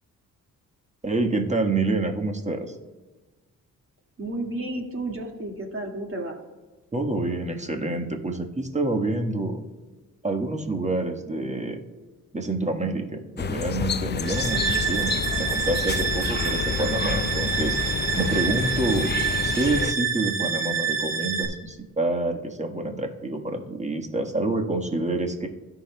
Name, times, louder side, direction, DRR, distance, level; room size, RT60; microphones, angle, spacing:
voice 1, 1.0-2.7 6.9-9.6 10.2-11.8 12.3-19.1 19.5-25.5, right 2 dB, 20° right, 3 dB, 1.5 m, -27 dB
voice 2, 4.2-6.4, right 1 dB, 40° right, 2 dB, 2.1 m, -32 dB
sound 1, 13.4-19.9, left 7 dB, 30° left, 0.4 m, -29 dB
sound 2, 14.2-21.5, right 6 dB, 65° right, 1.8 m, -27 dB
16.5 x 5.9 x 2.3 m, 1.3 s
supercardioid pair, 55°, 36 cm